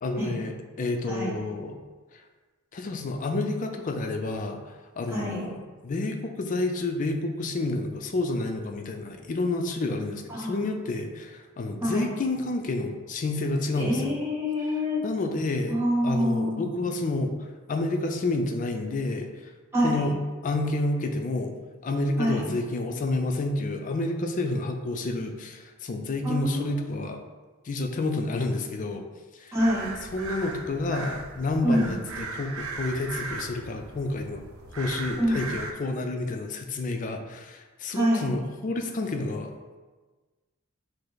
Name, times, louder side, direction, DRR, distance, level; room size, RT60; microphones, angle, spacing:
voice 1, 0.0-1.8 2.1-2.2 2.7-5.6 5.8-14.2 14.7-15.8 16.0-19.5 19.8-20.1 20.4-21.5 21.8-27.2 27.6-29.0 29.3-29.6 30.1-34.4 34.8-39.5, left 2 dB, 40° left, 4 dB, 0.4 m, -29 dB
voice 2, 1.1-1.4 5.1-5.5 10.3-10.5 11.8-12.0 13.7-15.0 15.7-16.8 19.7-20.1 22.2-22.5 26.2-26.8 29.5-29.9 31.6-31.9 35.2-35.4 37.9-38.3, equal, 10° right, -6 dB, 1.0 m, -26 dB
sound 1, 29.6-35.7, right 3 dB, 85° right, 0.5 m, -38 dB
5.3 x 2.0 x 3.9 m, 1.3 s
head